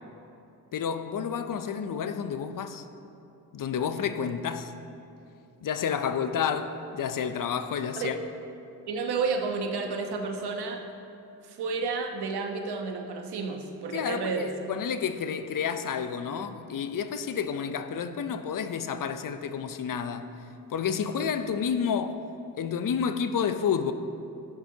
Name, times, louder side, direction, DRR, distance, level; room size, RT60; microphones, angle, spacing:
voice 1, 0.7-2.9 3.5-4.7 5.6-8.2 13.9-20.3 20.7-22.2 22.6-23.9, left 7 dB, 55° left, 0.6 m, -30 dB
voice 2, 8.9-10.8 11.4-14.5, right 4 dB, 80° right, 1.1 m, -31 dB
12.5 x 10.5 x 2.8 m
cardioid pair, 85°, 38 cm